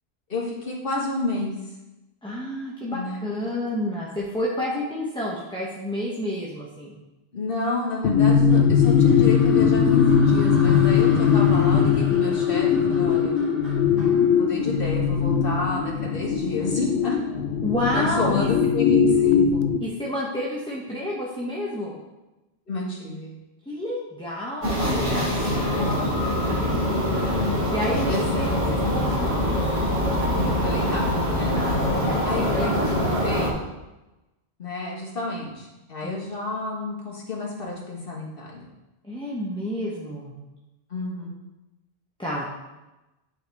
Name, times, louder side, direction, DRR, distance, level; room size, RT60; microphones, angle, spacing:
voice 1, 0.3-1.5 2.9-3.3 7.3-13.4 14.4-17.2 17.9-19.7 22.7-23.3 28.1-28.5 30.6-31.6 32.3-33.6 34.6-38.7 40.9-41.3, left 2 dB, 55° left, -3 dB, 1.8 m, -30 dB
voice 2, 2.2-7.0 17.6-18.5 19.8-22.0 23.7-26.7 27.0-29.4 31.5-32.7 36.0-36.1 39.0-40.3 42.2-42.4, left 1 dB, 5° left, -5 dB, 0.9 m, -30 dB
sound 1, 8.0-19.8, left 7 dB, 90° left, 0.9 m, -20 dB
sound 2, 8.5-15.7, equal, 55° right, 2.7 m, -41 dB
sound 3, 24.6-33.5, left 1 dB, 30° right, 2.1 m, -24 dB
9.8 x 4.9 x 3.5 m, 1.0 s
omnidirectional pair, 1.1 m